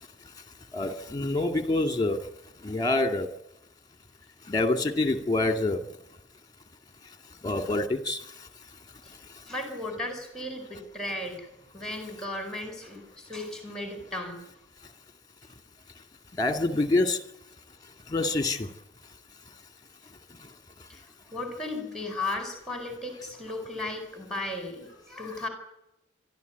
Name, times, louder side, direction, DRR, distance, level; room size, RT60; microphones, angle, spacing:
voice 1, 0.7-3.3 4.4-6.0 7.0-8.8 9.1-9.4 14.8-14.9 16.3-17.3 17.8-18.8 19.5-19.6 20.3-20.9, left 2 dB, 20° left, 6 dB, 2.2 m, -28 dB
voice 2, 9.5-11.5 11.7-14.4 20.9-25.5, left 2 dB, 5° left, 5 dB, 4.5 m, -35 dB
27.0 x 12.5 x 9.3 m, 0.86 s
head